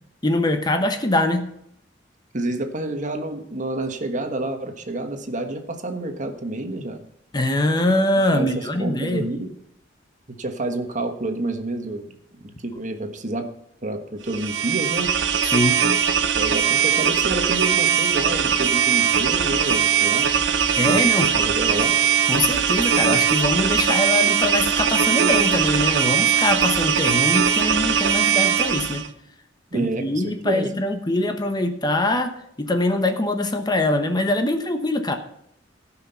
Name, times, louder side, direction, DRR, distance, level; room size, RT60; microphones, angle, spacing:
voice 1, 0.2-1.5 7.3-9.3 15.5-15.8 20.8-21.3 22.3-29.1 29.7-32.3 32.6-35.2, left 1 dB, 25° left, 7 dB, 1.0 m, -23 dB
voice 2, 2.3-7.0 8.3-9.5 10.3-12.1 12.4-13.5 13.8-15.2 16.4-20.3 20.8-21.9 29.7-30.7, right 2 dB, 45° right, 6 dB, 1.3 m, -29 dB
sound 1, 14.3-29.1, right 7 dB, 90° right, 0.8 m, -20 dB
17.0 x 5.9 x 5.7 m, 0.73 s
head